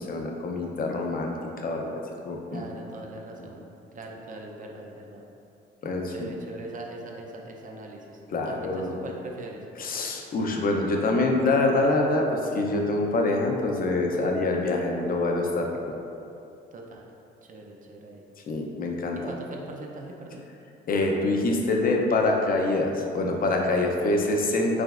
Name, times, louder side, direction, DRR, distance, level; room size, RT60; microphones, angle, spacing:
voice 1, 0.0-1.3 1.6-2.6 3.4-3.5 5.8-6.3 8.3-8.9 9.8-15.9 18.5-19.2 20.9-24.8, left 2 dB, 45° left, 1 dB, 0.6 m, -25 dB
voice 2, 2.5-3.6 3.9-5.2 6.1-9.6 15.6-15.7 16.7-17.1 17.4-18.2 19.1-20.4, right 2 dB, 40° right, 0 dB, 0.6 m, -41 dB
4.9 x 3.1 x 2.4 m, 2.7 s
cardioid pair, 90°, 20 cm